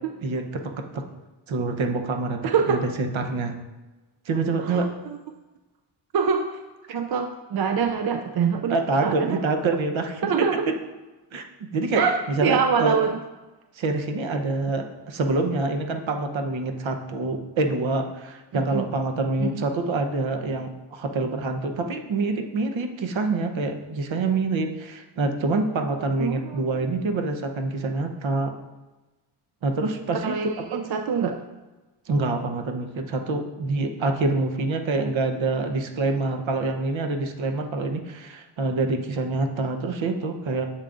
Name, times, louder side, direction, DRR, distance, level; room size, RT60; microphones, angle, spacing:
voice 1, 0.2-1.0 1.5-3.5 4.3-4.9 8.7-10.3 11.3-11.4 11.7-13.0 13.8-28.5 29.6-30.3 30.7-30.8 32.1-40.7, right 3 dB, 65° right, 4 dB, 0.9 m, -26 dB
voice 2, 2.4-2.8 4.6-5.2 6.1-6.6 6.9-9.4 10.2-10.7 11.9-13.2 18.5-18.8 19.4-19.6 26.2-26.9 30.1-31.4, right 6 dB, 50° right, 5 dB, 0.5 m, -25 dB
10.5 x 7.4 x 2.5 m, 1.1 s
wide cardioid pair, 175°, 49 cm